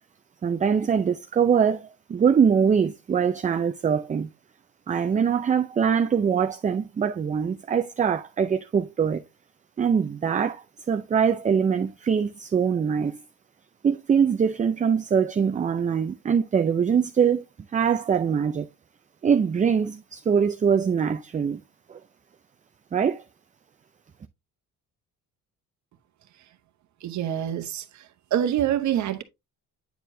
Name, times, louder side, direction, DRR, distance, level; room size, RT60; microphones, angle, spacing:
voice 1, 0.4-4.3 4.9-9.2 9.8-13.2 13.8-17.4 17.7-18.7 19.2-21.6 21.9-22.0 22.9-23.2, right 7 dB, 25° right, 0.4 m, -23 dB
voice 2, 27.0-27.8 28.3-29.2, right 10 dB, 60° right, 1.0 m, -25 dB
9.2 x 4.5 x 2.7 m
cardioid pair, 95°, 32 cm